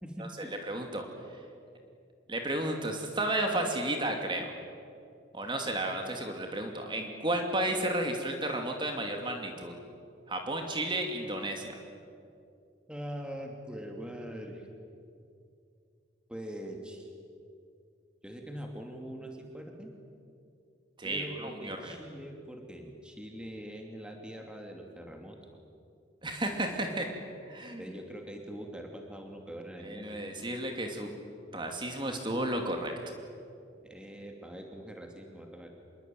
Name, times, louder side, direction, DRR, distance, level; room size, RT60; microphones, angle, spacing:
voice 1, 0.0-0.5 12.9-14.7 16.3-17.1 18.2-19.9 21.0-25.4 27.8-30.2 33.9-35.7, equal, 5° right, 2 dB, 2.7 m, -43 dB
voice 2, 0.7-1.1 2.3-4.5 5.3-9.7 10.3-11.7 21.0-22.0 26.2-27.1 27.5-27.8 29.8-31.1 31.5-32.9, right 1 dB, 25° right, 3 dB, 2.7 m, -32 dB
26.5 x 22.0 x 9.3 m, 2.4 s
head